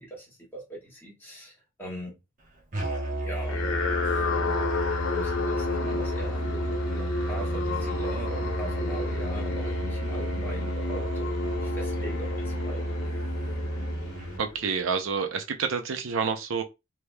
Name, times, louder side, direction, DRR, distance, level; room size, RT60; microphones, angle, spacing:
voice 1, 0.0-2.1 3.1-3.7 4.0-4.8 5.1-12.9, right 1 dB, 10° left, 1.3 m, -40 dB
Musical instrument, 2.7-14.4, right 1 dB, 40° right, 0.9 m, -32 dB
sound 1, 3.4-14.9, left 3 dB, 85° left, 0.7 m, -32 dB
voice 2, 14.4-16.6, right 5 dB, 75° right, 0.5 m, -28 dB
3.3 x 2.9 x 2.2 m
head